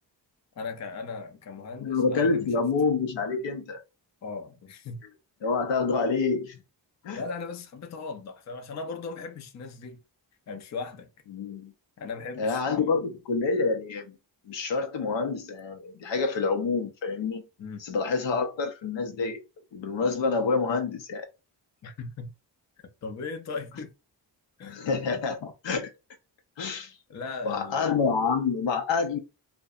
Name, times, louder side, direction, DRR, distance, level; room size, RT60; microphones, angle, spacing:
voice 1, 0.5-2.6 4.2-5.0 7.1-10.0 10.5-11.1 12.0-12.9 17.6-17.8 21.8-22.3 23.0-23.9 24.6-24.8 27.1-28.0, left 4 dB, 40° left, 0.5 m, -38 dB
voice 2, 1.8-3.8 5.4-6.6 7.0-7.2 11.3-11.7 12.4-14.1 14.5-17.4 17.8-19.4 19.7-21.3 24.7-25.9 26.6-27.0 27.4-29.2, left 4 dB, 80° left, 0.6 m, -27 dB
2.6 x 2.1 x 2.3 m
cardioid pair, 75°, 44 cm